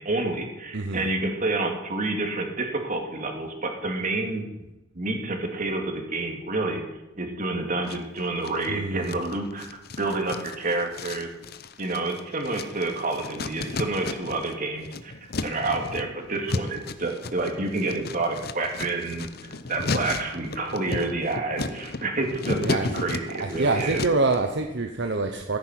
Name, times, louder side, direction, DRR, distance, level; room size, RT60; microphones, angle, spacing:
voice 1, 0.0-4.5 4.9-6.8 7.2-9.6 10.0-11.3 11.8-19.3 19.7-24.0, right 2 dB, 45° right, 3 dB, 2.4 m, -29 dB
voice 2, 0.7-1.1 8.7-9.2 22.5-23.0 23.4-25.6, right 3 dB, 65° right, 4 dB, 1.0 m, -26 dB
sound 1, 7.9-8.7 9.0-14.5 14.8-24.4, left 3 dB, 55° left, 0.8 m, -34 dB
14.5 x 9.0 x 5.9 m, 0.96 s
head